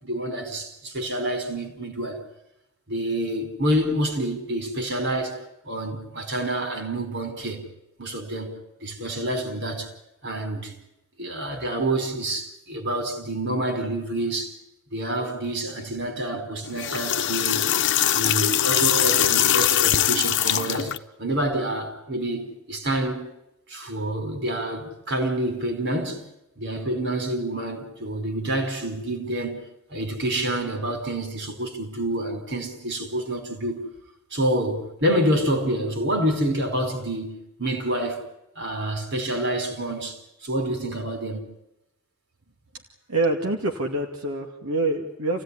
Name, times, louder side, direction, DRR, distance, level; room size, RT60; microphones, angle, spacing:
voice 1, 0.0-2.2 2.9-7.6 8.0-9.9 10.2-10.7 11.2-14.6 14.9-17.7 18.1-23.3 23.7-26.2 26.6-29.6 29.9-33.8 34.3-38.2 38.5-41.4, right 1 dB, 55° right, 4.8 m, -28 dB
sound 1, 16.6-21.0, left 11 dB, 55° left, 1.0 m, -22 dB
voice 2, 43.1-45.4, right 2 dB, 80° right, 2.4 m, -26 dB
29.0 x 16.5 x 10.0 m
head